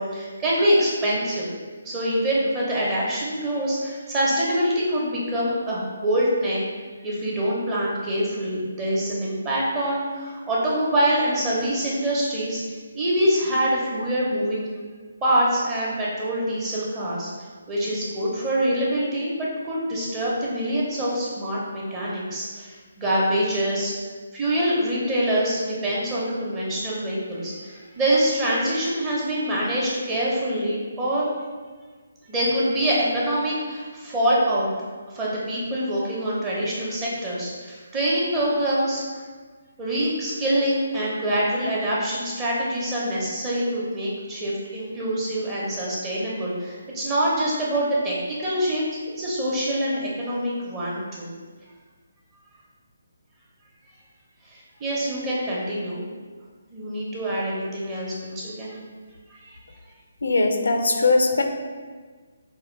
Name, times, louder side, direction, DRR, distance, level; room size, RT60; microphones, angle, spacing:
voice 1, 0.0-1.4 1.8-6.6 7.0-12.6 12.9-14.7 15.2-17.3 17.7-23.9 24.3-31.3 32.3-34.7 35.1-39.0 39.8-48.8 49.2-51.3 54.5-56.0 56.7-58.8, right 1 dB, 20° right, -6 dB, 1.0 m, -25 dB
voice 2, 60.2-61.4, left 3 dB, 80° left, 4 dB, 0.5 m, -20 dB
4.8 x 2.7 x 3.2 m, 1.4 s
hypercardioid pair, 155°, 0 cm